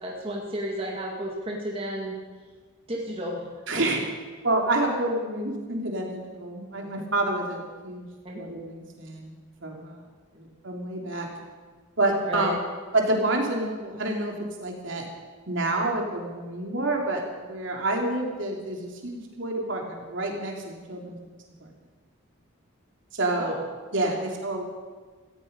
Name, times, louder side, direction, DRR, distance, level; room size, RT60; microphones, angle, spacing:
voice 1, 0.0-2.2 2.9-3.5 8.2-8.4 12.2-12.5 23.4-23.6, equal, 25° right, -2 dB, 2.1 m, -32 dB
voice 2, 3.7-4.0 4.4-8.1 8.3-9.3 9.6-10.0 10.3-11.3 12.0-12.6 12.9-14.3 14.6-15.1 15.5-21.2 21.6-21.7 23.1-23.6 23.9-24.6, right 2 dB, 65° right, 0 dB, 3.0 m, -28 dB
17.5 x 14.5 x 5.4 m, 1.4 s
head